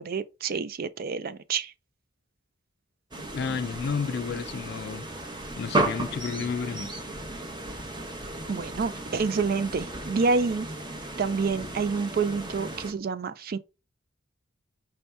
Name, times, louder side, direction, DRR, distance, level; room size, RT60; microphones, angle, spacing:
voice 1, 0.0-1.7 8.5-10.7 11.2-13.6, right 4 dB, 45° right, 0.4 m, -28 dB
sound 1, 3.1-12.9, right 2 dB, 20° right, 0.7 m, -34 dB
voice 2, 3.3-5.1 5.6-6.9, left 6 dB, 55° left, 0.3 m, -31 dB
5.4 x 2.8 x 3.3 m
head